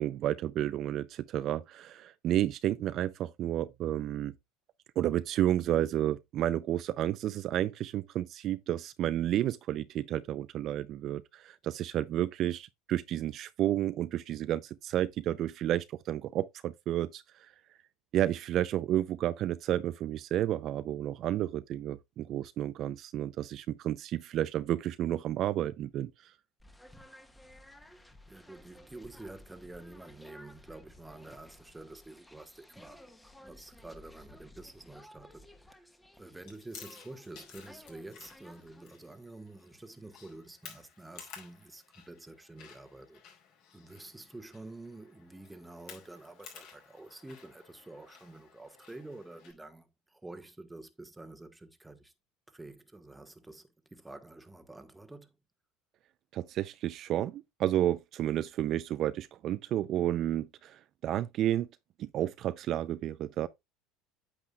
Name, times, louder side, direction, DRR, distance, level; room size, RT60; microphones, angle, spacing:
voice 1, 0.0-4.3 5.0-17.2 18.1-26.3 56.3-61.7 62.0-63.5, right 12 dB, 50° right, 0.4 m, -31 dB
sound 1, 26.6-38.8, left 1 dB, 10° left, 1.2 m, -56 dB
voice 2, 28.3-33.1 33.4-35.9 36.2-43.2 43.7-52.1 52.5-55.3, right 2 dB, 10° right, 1.1 m, -49 dB
Chewing mastication, 36.4-49.5, left 7 dB, 65° left, 4.7 m, -54 dB
8.8 x 8.0 x 2.3 m
supercardioid pair, 105°, 0 cm